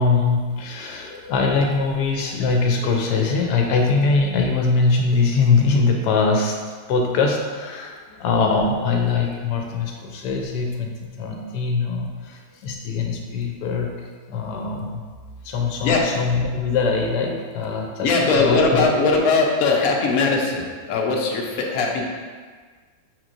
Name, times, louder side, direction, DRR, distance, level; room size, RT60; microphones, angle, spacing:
voice 1, 0.0-6.6 6.9-13.9 14.3-15.0 15.4-18.9, left 4 dB, 90° left, 1 dB, 1.2 m, -22 dB
voice 2, 15.8-16.2 16.5-16.6 18.0-22.0, left 3 dB, 70° left, -1 dB, 1.0 m, -20 dB
6.0 x 3.0 x 2.5 m, 1.5 s
omnidirectional pair, 1.7 m